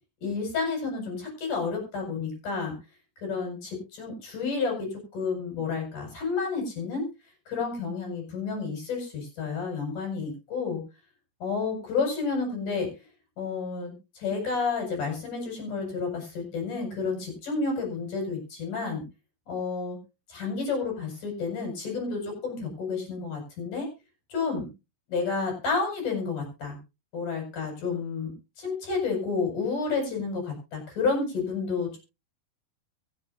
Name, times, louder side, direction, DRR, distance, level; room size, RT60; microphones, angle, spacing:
voice 1, 0.2-2.7 3.2-7.1 7.5-10.8 11.4-12.9 13.4-19.0 19.5-20.0 20.3-23.9 24.3-24.7 25.1-26.8 27.1-32.0, left 4 dB, 50° left, 2 dB, 6.7 m, -30 dB
23.5 x 8.0 x 2.6 m, 0.27 s
omnidirectional pair, 4.6 m